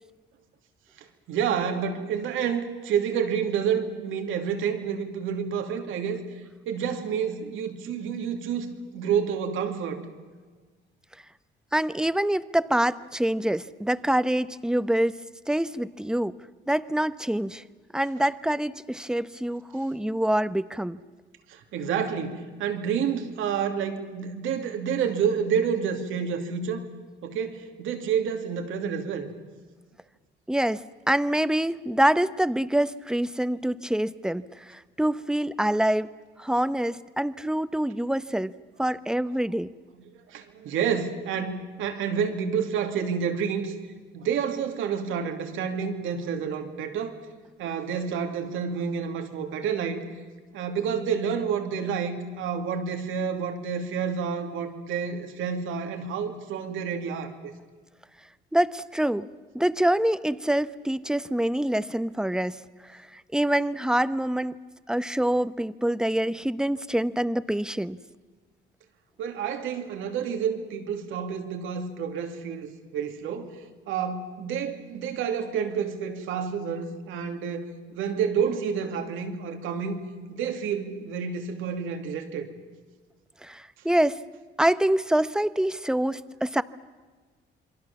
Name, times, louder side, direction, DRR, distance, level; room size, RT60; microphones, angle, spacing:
voice 1, 1.0-6.2 6.7-10.0 19.7-19.8 21.5-26.9 27.2-29.3 40.3-43.7 44.1-47.2 47.6-50.0 50.5-57.3 69.2-73.5 73.9-80.0 80.3-82.5, right 7 dB, 90° right, 5 dB, 2.7 m, -29 dB
voice 2, 11.7-15.2 15.5-16.4 16.7-17.6 17.9-21.0 30.5-36.1 36.4-39.7 58.5-59.3 59.5-62.6 62.9-64.6 64.9-68.0 83.4-84.2 84.6-86.6, right 1 dB, 5° right, 14 dB, 0.9 m, -26 dB
27.5 x 23.5 x 7.2 m, 1.4 s
cardioid pair, 90°, 20 cm